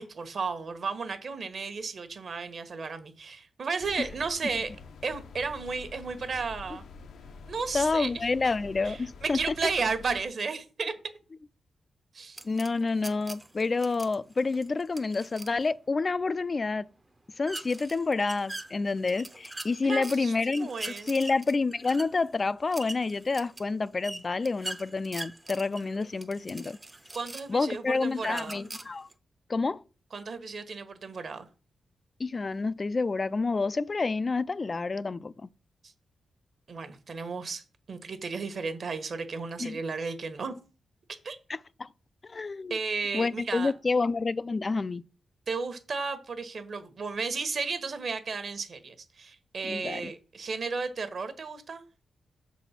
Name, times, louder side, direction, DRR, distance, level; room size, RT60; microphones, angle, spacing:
voice 1, 0.0-4.7 5.0-6.9 7.5-8.1 8.4-8.5 8.8-10.9 12.1-12.4 19.8-21.1 27.1-28.6 30.1-31.5 35.8-35.9 36.7-37.6 37.9-40.5 41.2-41.4 42.7-43.7 45.5-51.8, right 4 dB, 50° right, 1.1 m, -34 dB
sound 1, 3.8-10.2, left 4 dB, 75° left, 0.7 m, -47 dB
voice 2, 7.7-9.4 12.4-16.9 17.4-20.7 21.1-26.8 27.5-29.1 29.5-29.8 32.2-35.5 39.6-39.8 41.5-41.9 42.2-42.8 43.1-45.0 49.6-50.1, left 3 dB, 30° left, 0.3 m, -28 dB
sound 2, 12.4-15.6 17.5-20.2 20.5-27.6 28.1-29.1, right 2 dB, 15° right, 0.6 m, -42 dB
6.7 x 4.2 x 5.7 m
wide cardioid pair, 125°, 0 cm